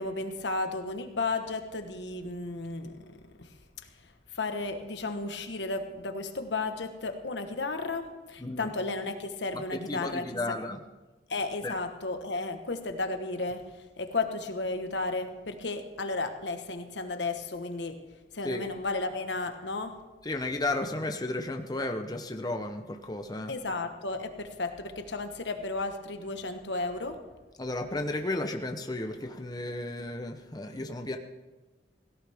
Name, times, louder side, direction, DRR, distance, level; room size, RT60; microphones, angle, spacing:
voice 1, 0.0-3.1 3.4-3.5 4.3-10.6 11.3-13.6 14.0-18.0 18.3-20.0 23.5-27.2, left 3 dB, 85° left, 7 dB, 1.3 m, -33 dB
voice 2, 8.4-8.7 9.5-10.8 11.6-11.7 18.4-18.7 20.2-23.6 27.6-31.2, left 2 dB, 20° left, 4 dB, 0.8 m, -33 dB
17.0 x 16.5 x 3.5 m, 1.2 s
head